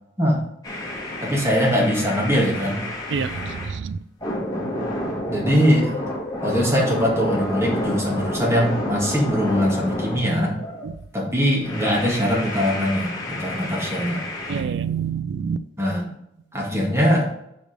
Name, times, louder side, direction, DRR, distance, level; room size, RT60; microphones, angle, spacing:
sound 1, 0.6-3.8 4.2-10.9 11.6-14.6, left 1 dB, 20° left, 1.5 m, -30 dB
voice 1, 1.2-2.8 5.3-6.0 6.4-10.5 11.1-14.2 15.8-16.1 16.5-17.2, equal, 15° right, -3 dB, 1.9 m, -21 dB
voice 2, 3.1-4.0 10.8-11.0 14.5-15.6, right 6 dB, 80° right, 15 dB, 0.4 m, -27 dB
5.1 x 4.8 x 5.0 m, 0.76 s
head